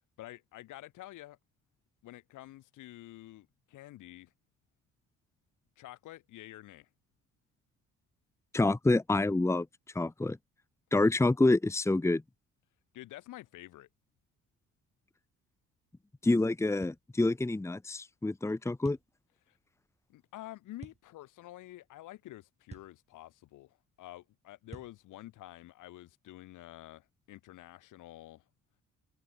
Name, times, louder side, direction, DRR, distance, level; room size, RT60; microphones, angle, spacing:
voice 1, 0.2-1.4 2.0-4.3 5.8-6.9 12.9-13.9 19.5-19.6 20.1-28.4, left 15 dB, 90° left, 7.2 m, -49 dB
voice 2, 8.5-9.7 9.9-10.4 10.9-12.2 16.2-19.0, left 2 dB, 10° left, 1.0 m, -27 dB
sound 1, 16.8-17.1 18.8-19.1 20.8-21.0 22.7-23.0 24.7-25.0, right 3 dB, 20° right, 2.6 m, -49 dB
open air
cardioid pair, 90°, 30 cm